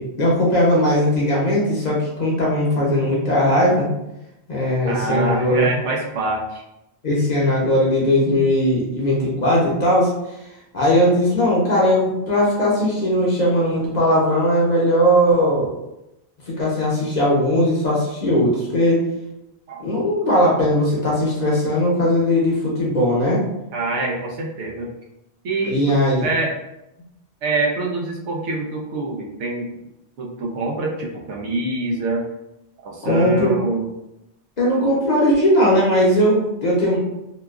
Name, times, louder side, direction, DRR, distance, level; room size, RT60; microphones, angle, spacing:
voice 1, 0.0-3.9 4.5-5.7 7.0-10.1 10.7-15.8 16.5-19.0 19.8-23.4 25.6-26.3 33.0-33.5 34.6-37.0, equal, 45° left, -5 dB, 0.7 m, -18 dB
voice 2, 4.8-6.6 19.7-19.9 23.7-24.9 25.4-25.8 26.2-26.5 27.4-29.8 30.2-32.2 32.8-33.9, right 3 dB, 85° right, -1 dB, 1.0 m, -25 dB
2.9 x 2.3 x 2.3 m, 0.88 s
omnidirectional pair, 1.2 m